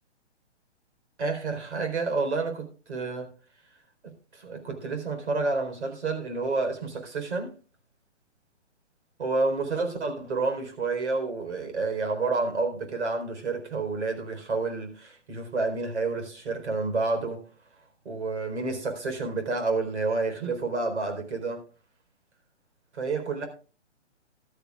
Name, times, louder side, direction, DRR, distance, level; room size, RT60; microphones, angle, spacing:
voice 1, 1.2-3.3 4.0-7.5 9.2-17.4 18.0-21.6 22.9-23.5, right 3 dB, 70° right, 4.2 m, -29 dB
17.0 x 12.0 x 2.4 m
hypercardioid pair, 170°, 35 cm